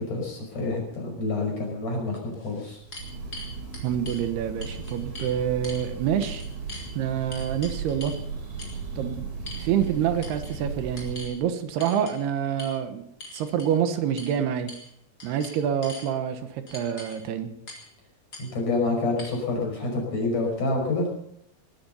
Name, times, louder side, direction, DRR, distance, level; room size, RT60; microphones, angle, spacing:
voice 1, 0.0-2.8 18.4-21.1, left 2 dB, 40° left, 1 dB, 6.5 m, -28 dB
sound 1, 1.7-1.8 2.3-4.2 4.6-5.3 5.6-5.9 6.2-6.9 7.3-8.2 8.6-8.8 9.5-9.9 10.2-10.6 11.0-11.3 11.8-12.2 12.6-12.7 13.2-13.7 14.2-14.3 14.7-14.9 15.2-16.1 16.7-17.2 17.7-17.9 18.3-18.4 19.2-19.3, left 2 dB, 25° left, 3.8 m, -42 dB
Breathing / Bird, 2.8-11.3, right 5 dB, 45° right, 5.1 m, -36 dB
voice 2, 3.8-6.4 7.0-8.1 9.0-9.3 9.6-13.0 13.3-14.7 15.2-17.5, right 9 dB, 75° right, 8 dB, 3.1 m, -27 dB
19.5 x 13.0 x 5.5 m, 0.72 s
omnidirectional pair, 4.7 m